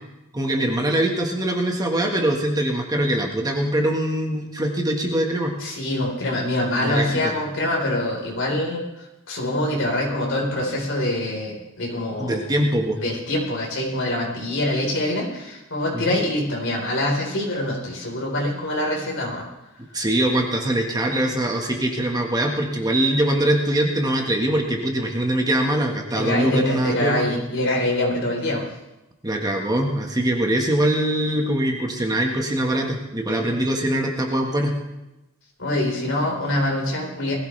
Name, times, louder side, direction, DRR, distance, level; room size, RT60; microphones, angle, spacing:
voice 1, 0.3-5.5 6.8-7.3 12.2-13.0 15.9-16.2 19.9-27.2 29.2-34.7, right 1 dB, 20° right, 1 dB, 1.5 m, -22 dB
voice 2, 5.6-8.8 9.3-12.4 13.0-19.4 26.1-28.7 35.6-37.3, left 1 dB, 60° left, -1 dB, 4.2 m, -24 dB
20.5 x 15.0 x 3.3 m, 0.98 s
head